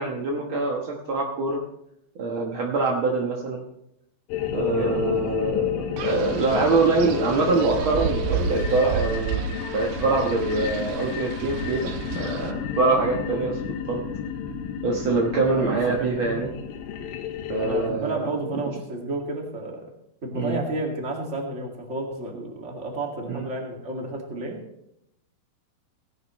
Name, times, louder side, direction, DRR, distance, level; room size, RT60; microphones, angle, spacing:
voice 1, 0.0-1.6 2.2-3.6 4.5-14.0 14.8-16.5 17.5-18.6 20.3-20.6 23.3-23.5, right 3 dB, 70° right, -1 dB, 1.2 m, -24 dB
sound 1, 4.3-17.9, left 8 dB, 85° left, 2.9 m, -31 dB
voice 2, 4.6-5.0 15.3-16.4 17.6-19.8 20.2-24.6, right 2 dB, 25° right, 0 dB, 1.7 m, -32 dB
Wind, 6.0-12.5, right 6 dB, 85° right, 2.9 m, -32 dB
18.0 x 10.5 x 3.1 m, 0.80 s
omnidirectional pair, 4.2 m